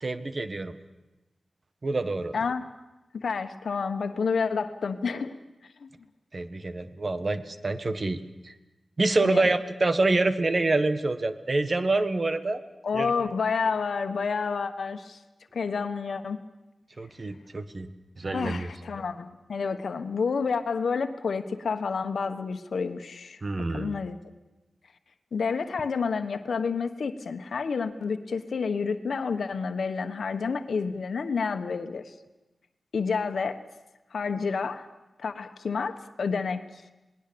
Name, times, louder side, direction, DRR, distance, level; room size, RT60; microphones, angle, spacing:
voice 1, 0.0-0.8 1.8-2.3 6.3-8.2 8.4-8.5 9.0-12.6 12.9-13.1 17.0-17.9 18.2-18.7 23.4-23.9, right 2 dB, 45° right, 10 dB, 1.5 m, -26 dB
voice 2, 2.3-2.7 3.2-5.3 5.8-5.9 9.2-9.5 12.8-15.2 15.5-16.4 18.3-23.4 23.7-24.2 25.3-32.0 32.9-33.6 34.1-34.8 35.2-36.8, left 5 dB, 80° left, 8 dB, 1.3 m, -29 dB
27.0 x 19.5 x 7.0 m, 1.0 s
cardioid pair, 55°, 0 cm